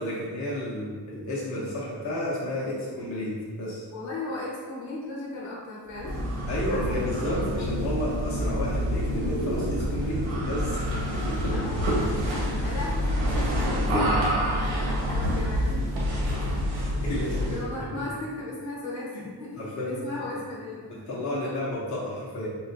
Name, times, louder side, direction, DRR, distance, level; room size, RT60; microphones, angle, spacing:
voice 1, 0.0-3.8 6.5-10.9 11.3-11.5 12.3-12.4 16.3-16.4 17.0-18.0 19.1-19.2 19.6-20.0 20.9-22.5, left 1 dB, 40° left, -7 dB, 0.7 m, -32 dB
voice 2, 3.9-6.4 6.7-7.9 11.5-12.3 12.6-16.0 17.4-21.0 21.4-21.5, left 2 dB, 75° left, -6 dB, 0.9 m, -37 dB
sound 1, 6.0-17.7, equal, 80° right, 0.9 m, -27 dB
3.8 x 2.1 x 2.6 m, 1.5 s
wide cardioid pair, 140°, 46 cm